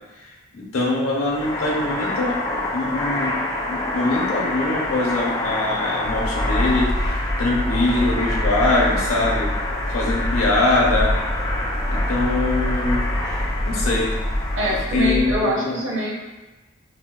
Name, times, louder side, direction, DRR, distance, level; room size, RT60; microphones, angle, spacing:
voice 1, 0.2-2.4 2.7-3.3 3.7-6.9 7.4-9.5 9.9-11.1 11.9-13.0 13.6-14.1 14.9-15.8, left 2 dB, 70° left, -4 dB, 0.8 m, -23 dB
sound 1, 1.2-14.8, left 2 dB, 20° left, 0.3 m, -27 dB
sound 2, 6.0-15.4, equal, 20° right, 0.7 m, -26 dB
voice 2, 14.6-16.1, right 1 dB, 60° right, -3 dB, 0.7 m, -24 dB
5.3 x 2.2 x 2.2 m, 1.2 s
head